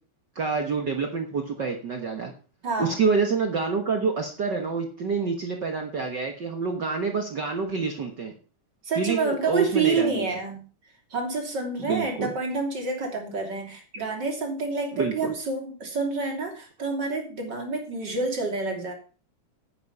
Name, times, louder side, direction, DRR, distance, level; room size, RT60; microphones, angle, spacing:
voice 1, 0.3-2.3 2.8-8.3 9.0-10.3 11.8-12.3 14.9-15.3, right 4 dB, 85° right, 3 dB, 0.9 m, -27 dB
voice 2, 2.6-3.0 8.8-10.7 11.1-18.9, right 3 dB, 30° right, 2 dB, 3.1 m, -28 dB
10.0 x 8.9 x 5.6 m, 0.37 s
omnidirectional pair, 4.1 m